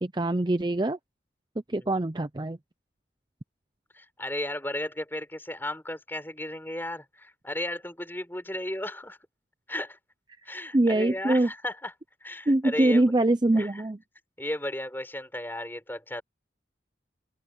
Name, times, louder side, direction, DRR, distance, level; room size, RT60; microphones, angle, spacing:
voice 1, 0.0-1.0 1.7-2.6 10.7-11.5 12.5-14.0, right 1 dB, 25° right, 0.5 m, -23 dB
voice 2, 3.9-9.2 9.7-10.0 10.4-11.9 12.2-13.1 13.5-13.8 14.4-16.2, left 1 dB, 10° left, 6.4 m, -34 dB
open air
head